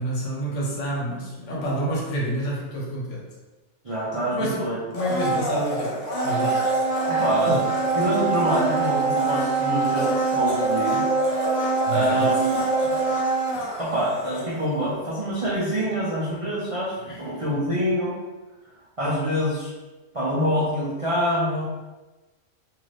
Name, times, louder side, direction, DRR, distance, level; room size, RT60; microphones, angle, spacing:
voice 1, 0.0-3.2 4.3-6.7 7.5-7.6 11.9-12.5 17.0-17.2, equal, 70° left, -3 dB, 1.1 m, -28 dB
voice 2, 3.8-4.8 5.3-5.4 7.1-7.6 7.9-11.0 11.9-12.9 13.5-18.2 19.0-19.7 20.1-21.6, equal, 50° right, -8 dB, 0.4 m, -26 dB
Domestic sounds home sounds, 4.9-14.9 15.2-15.3, right 3 dB, 45° left, 0.6 m, -24 dB
2.7 x 2.6 x 3.2 m, 1.1 s
omnidirectional pair, 1.4 m